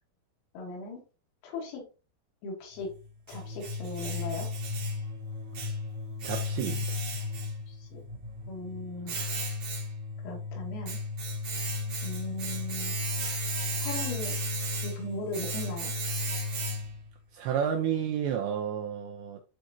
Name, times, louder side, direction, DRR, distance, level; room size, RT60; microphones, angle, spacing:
voice 1, 0.6-1.0 1.4-1.8 2.4-2.9 3.3-4.5 7.7-8.0 8.5-9.2 10.2-11.0 12.0-12.9 13.8-14.4 14.8-15.9, left 2 dB, 80° left, 5.1 m, -38 dB
Domestic sounds home sounds, 2.7-17.1, left 1 dB, 60° right, 1.6 m, -34 dB
voice 2, 6.2-7.0 17.3-19.4, right 8 dB, 80° right, 2.5 m, -31 dB
12.0 x 3.9 x 2.9 m
omnidirectional pair, 5.9 m